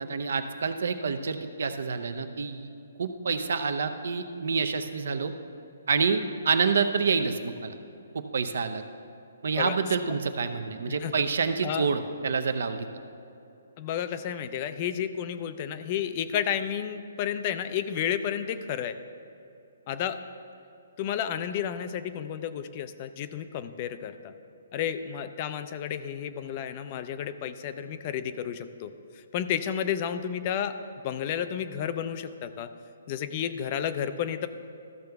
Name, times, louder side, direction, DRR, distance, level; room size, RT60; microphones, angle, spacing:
voice 1, 0.0-2.7 3.0-5.3 5.9-7.7 8.1-8.8 9.4-12.9, right 5 dB, 70° right, 8 dB, 0.6 m, -28 dB
voice 2, 13.8-19.0 19.9-20.2 21.0-24.3 24.7-30.8 31.0-32.7 33.1-34.5, left 9 dB, 30° left, 11 dB, 0.4 m, -31 dB
13.5 x 6.6 x 3.5 m, 2.7 s
hypercardioid pair, 160°, 0 cm